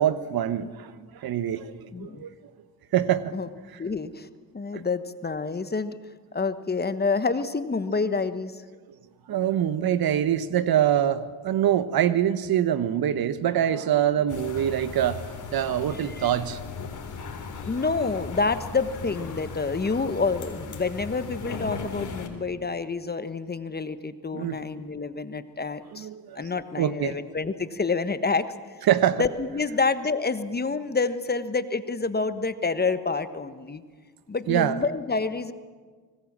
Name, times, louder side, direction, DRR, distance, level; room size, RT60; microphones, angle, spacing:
voice 1, 0.0-2.3 2.9-3.3 3.7-3.8 4.7-4.8 9.3-15.2 15.5-16.6 24.3-24.6 25.9-26.5 26.8-27.2 28.9-29.2 34.5-34.8, right 10 dB, 55° right, 13 dB, 1.3 m, -24 dB
voice 2, 1.9-2.2 3.3-3.5 3.8-4.3 4.5-6.0 6.3-8.6 15.9-16.3 17.6-26.1 26.3-28.4 29.2-33.8 34.3-35.5, left 4 dB, 20° left, 12 dB, 1.3 m, -28 dB
sound 1, 14.3-22.3, left 4 dB, 45° left, 3.8 m, -37 dB
24.5 x 19.5 x 7.5 m, 1.5 s
supercardioid pair, 80°, 43 cm